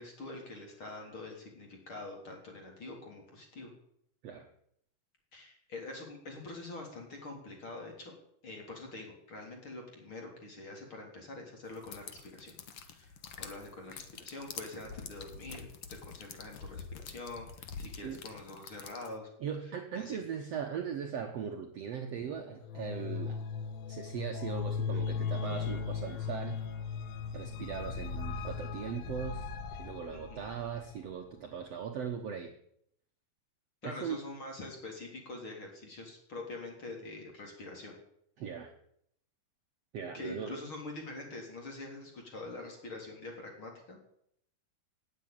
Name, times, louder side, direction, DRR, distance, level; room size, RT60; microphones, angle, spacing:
voice 1, 0.0-3.7 5.3-8.1 8.4-12.5 12.8-19.3 19.6-20.2 30.1-30.6 33.8-38.0 40.1-44.0, left 2 dB, 35° left, 2 dB, 4.2 m, -45 dB
sound 1, 11.7-19.2, left 6 dB, 60° left, 1.6 m, -47 dB
voice 2, 19.4-23.4 23.9-26.6 27.3-32.5 33.8-34.2 38.4-38.7 39.9-40.6, right 7 dB, 60° right, 4 dB, 1.8 m, -39 dB
sound 2, 22.6-30.9, left 6 dB, 85° left, 3.1 m, -37 dB
18.0 x 8.0 x 9.0 m, 0.71 s
omnidirectional pair, 4.1 m